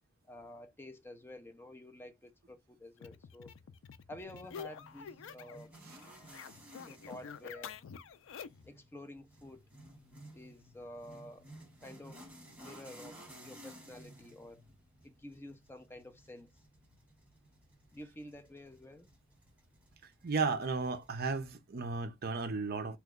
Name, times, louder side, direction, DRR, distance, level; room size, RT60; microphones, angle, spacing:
voice 1, 0.3-3.5 4.1-5.7 6.7-7.8 8.6-9.6 10.3-11.5 11.8-12.2 12.5-14.6 15.0-16.5 17.9-19.1, left 1 dB, 10° left, 0.5 m, -50 dB
sound 1, 3.0-5.7 5.9-8.7, left 7 dB, 65° left, 0.4 m, -48 dB
sound 2, 4.2-21.5, equal, 5° right, 1.2 m, -56 dB
voice 2, 20.2-23.0, right 4 dB, 50° right, 0.6 m, -34 dB
3.1 x 2.2 x 3.6 m
head